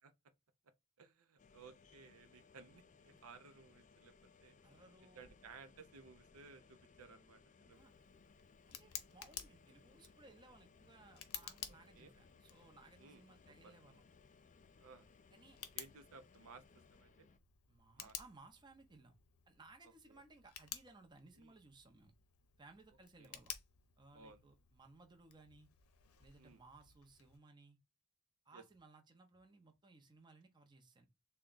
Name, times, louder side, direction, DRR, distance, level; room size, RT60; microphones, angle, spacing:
voice 1, 1.0-4.1 4.4-4.6 5.1-7.9 11.9-12.1 13.0-13.2 13.6-13.7 14.8-15.1 15.7-16.6 16.9-17.3 18.0-18.1 20.1-20.2 21.4-21.6 23.2-23.4 24.1-24.4 26.4-26.6 28.5-28.6, right 4 dB, 80° right, 0.6 m, -58 dB
sound 1, 1.4-17.4, left 5 dB, 35° left, 0.4 m, -66 dB
voice 2, 4.6-5.3 7.7-7.9 8.7-14.0 15.3-15.6 17.7-19.1 19.5-22.1 22.6-23.5 24.0-25.7 26.2-27.8 28.5-31.1, right 3 dB, 20° right, 0.7 m, -62 dB
Tick, 7.7-27.4, left 10 dB, 80° left, 0.6 m, -54 dB
3.5 x 2.2 x 3.8 m
head